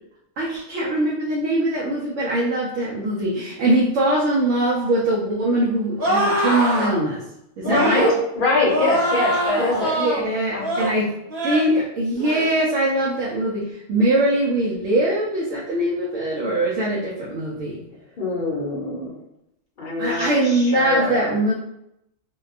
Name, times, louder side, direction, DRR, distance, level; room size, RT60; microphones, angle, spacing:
voice 1, 0.4-7.2 7.6-8.1 10.0-11.1 11.4-17.8 20.0-21.5, right 1 dB, 75° right, -5 dB, 0.9 m, -22 dB
sound 1, 6.0-6.9 7.6-8.2 8.6-10.2 10.6-10.9 11.3-11.7 12.1-12.5, right 1 dB, 50° right, 1.0 m, -23 dB
voice 2, 7.6-8.1 8.3-10.0 10.5-10.7 18.2-19.1 19.8-21.3, left 2 dB, 50° left, -4 dB, 0.8 m, -23 dB
2.7 x 2.2 x 2.4 m, 0.81 s
omnidirectional pair, 1.3 m